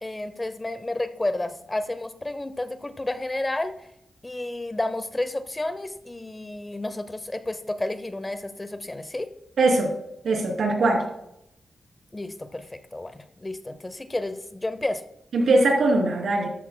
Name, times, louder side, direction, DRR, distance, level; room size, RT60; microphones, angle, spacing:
voice 1, 0.0-3.8 4.2-9.3 12.1-12.7 12.9-15.0, left 2 dB, 20° left, 11 dB, 0.6 m, -31 dB
voice 2, 9.6-9.9 10.2-11.0 15.3-16.5, right 2 dB, 90° right, 1 dB, 2.9 m, -21 dB
13.0 x 13.0 x 2.2 m, 0.82 s
wide cardioid pair, 140°, 0 cm